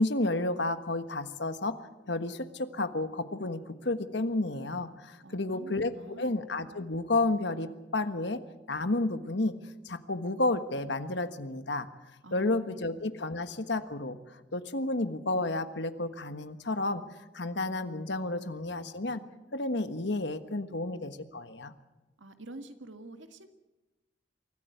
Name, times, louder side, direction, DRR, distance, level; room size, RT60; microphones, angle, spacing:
voice 1, 0.0-8.4 8.7-9.5 9.8-11.9 12.3-17.0 17.3-19.2 19.5-21.7, left 2 dB, 65° left, 10 dB, 1.4 m, -31 dB
voice 2, 5.2-6.4 12.2-12.8 22.2-23.5, right 2 dB, 85° right, 8 dB, 1.9 m, -47 dB
24.0 x 14.5 x 9.4 m, 1.1 s
head